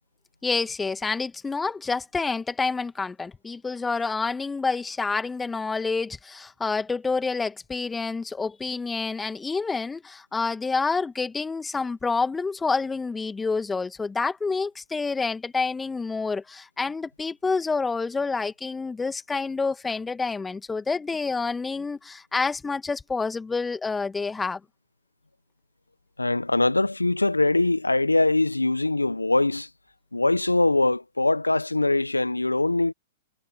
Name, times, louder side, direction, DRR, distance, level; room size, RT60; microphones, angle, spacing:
voice 1, 0.4-24.6, left 4 dB, 10° left, 2.0 m, -28 dB
voice 2, 26.2-29.7 30.1-32.9, left 2 dB, 90° left, 0.9 m, -22 dB
figure-of-eight pair, 105°, 0 cm